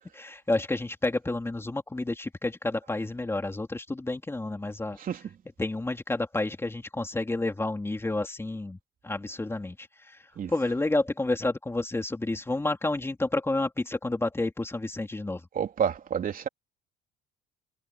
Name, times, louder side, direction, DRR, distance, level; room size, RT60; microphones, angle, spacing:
voice 1, 0.1-5.0 5.6-8.8 9.0-10.2 10.5-15.4, left 2 dB, 10° left, 3.2 m, -30 dB
voice 2, 5.0-5.4 10.3-10.5 15.5-16.5, right 8 dB, 45° right, 3.6 m, -29 dB
cardioid pair, 100°, 20 cm